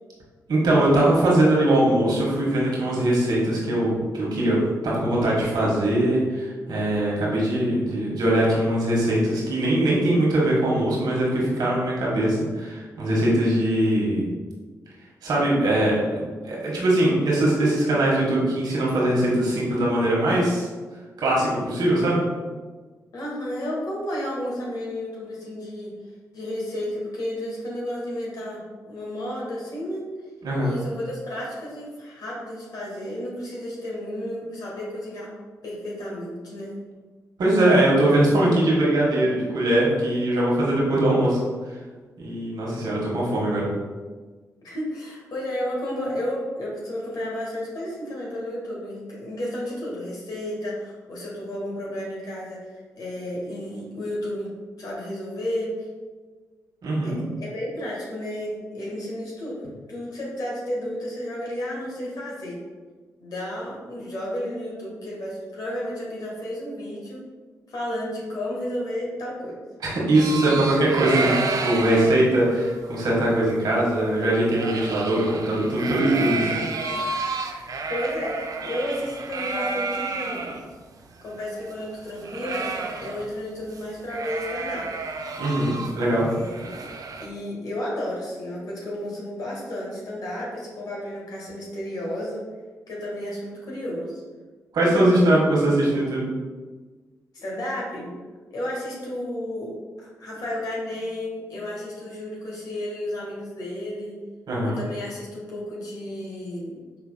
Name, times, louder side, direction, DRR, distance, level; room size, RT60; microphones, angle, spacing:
voice 1, 0.5-14.2 15.2-20.7 21.2-22.2 30.4-30.7 37.4-41.4 42.2-43.7 56.8-57.2 69.8-76.6 85.4-86.3 94.7-96.3 104.5-104.8, right 1 dB, 75° right, -5 dB, 1.4 m, -21 dB
voice 2, 23.1-25.9 26.3-30.1 30.6-35.3 35.6-36.8 44.6-54.5 54.8-55.7 57.0-62.6 63.2-67.2 67.7-69.6 77.9-80.5 81.2-82.7 83.0-84.9 86.2-86.8 87.2-92.4 92.9-94.2 97.3-98.1 98.5-104.1 104.6-106.8, left 1 dB, 65° left, -5 dB, 1.4 m, -32 dB
sound 1, 70.1-80.6 81.0-81.1 81.3-83.4 83.7-83.8 84.1-87.3, right 3 dB, 55° right, 0.5 m, -31 dB
5.6 x 3.5 x 2.2 m, 1.4 s
supercardioid pair, 50°, 7 cm